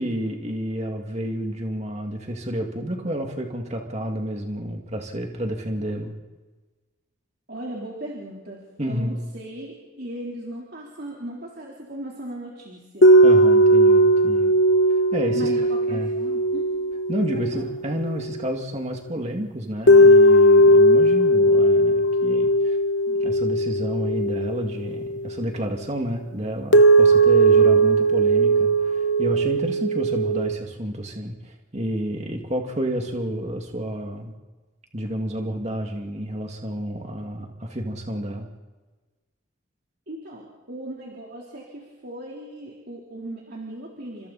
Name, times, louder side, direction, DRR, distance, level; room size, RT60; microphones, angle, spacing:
voice 1, 0.0-6.1 8.8-9.2 13.2-14.5 15.1-15.4 15.9-16.1 17.1-22.8 23.1-34.3 34.9-38.5, equal, 35° right, 2 dB, 2.4 m, -30 dB
voice 2, 7.5-13.2 15.3-16.7 17.3-17.7 40.1-44.3, right 1 dB, 55° right, -3 dB, 3.9 m, -37 dB
sound 1, 13.0-18.4 19.9-25.3 26.7-30.6, right 1 dB, 65° left, 1.0 m, -17 dB
30.0 x 26.0 x 4.3 m, 1.3 s
head